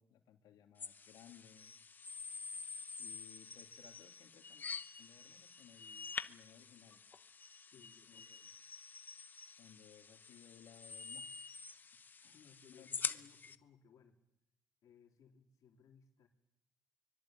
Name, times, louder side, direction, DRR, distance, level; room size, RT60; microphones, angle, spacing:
voice 1, 0.0-1.7 3.0-4.7 5.0-7.1 7.7-8.4 9.6-11.3 11.7-11.8 12.2-12.9 13.1-13.3, left 9 dB, 75° left, 5 dB, 3.1 m, -62 dB
sound 1, 0.8-13.6, left 5 dB, 25° left, 1.0 m, -47 dB
voice 2, 7.7-8.5 12.3-14.2 14.8-16.3, left 7 dB, 55° left, 3 dB, 3.6 m, -64 dB
24.0 x 22.5 x 9.1 m, 0.84 s
cardioid pair, 145°, 7 cm